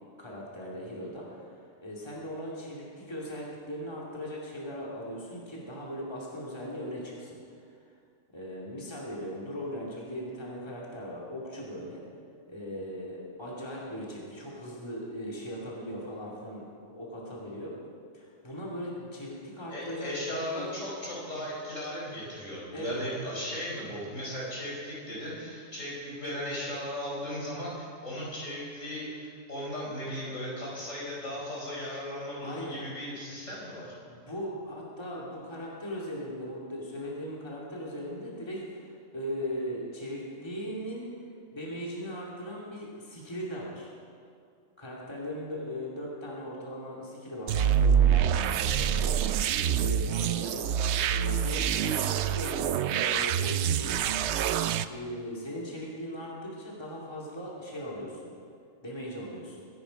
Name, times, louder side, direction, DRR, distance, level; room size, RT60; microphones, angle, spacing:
voice 1, 0.2-7.6 8.3-12.0 12.5-17.7 18.1-20.1 20.5-20.7 22.7-23.0 32.4-32.8 34.0-38.9 39.1-43.9 44.8-49.5 49.8-50.7 51.1-54.0 54.9-58.2 58.8-59.6, equal, 20° left, -4 dB, 2.5 m, -39 dB
voice 2, 19.7-33.9, equal, 75° left, -5 dB, 5.5 m, -36 dB
sound 1, 47.5-54.8, right 8 dB, 65° right, 0.8 m, -26 dB
22.5 x 10.5 x 5.2 m, 2.4 s
omnidirectional pair, 1.3 m